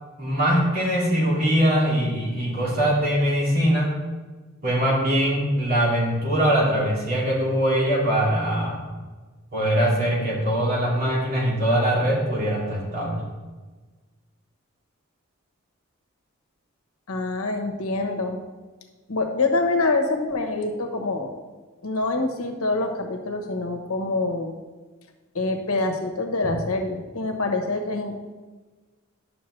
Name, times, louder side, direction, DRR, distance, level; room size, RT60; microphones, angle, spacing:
voice 1, 0.2-3.9 4.6-8.9 9.5-13.2, equal, 45° right, -5 dB, 2.7 m, -22 dB
voice 2, 17.1-18.4 19.1-21.3 21.8-24.5 25.3-28.2, left 3 dB, 90° left, 3 dB, 1.2 m, -25 dB
11.0 x 6.8 x 3.3 m, 1.3 s
head